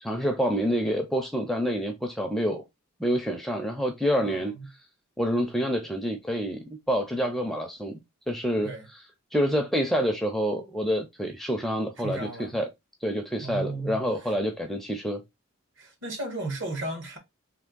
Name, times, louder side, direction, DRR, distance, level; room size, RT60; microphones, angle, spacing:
voice 1, 0.0-2.6 3.0-4.5 5.2-8.0 8.3-8.7 9.3-12.7 13.0-15.2, equal, ahead, 0.4 m, -27 dB
voice 2, 4.2-4.7 8.6-8.9 12.0-12.6 13.4-14.0 15.8-17.2, right 2 dB, 60° right, 1.4 m, -34 dB
3.5 x 2.8 x 3.8 m
head